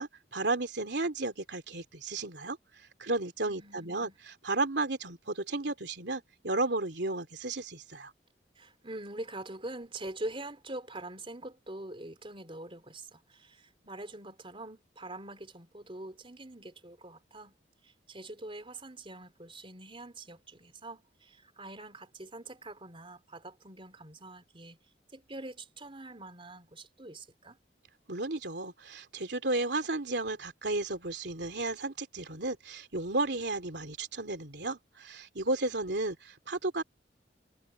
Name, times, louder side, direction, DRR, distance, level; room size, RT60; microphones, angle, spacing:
voice 1, 0.0-2.6 3.0-8.1 28.1-36.8, right 2 dB, 70° right, 3.1 m, -33 dB
voice 2, 3.5-4.2 8.6-17.5 17.8-24.8 25.1-27.6, right 2 dB, 30° right, 3.9 m, -44 dB
head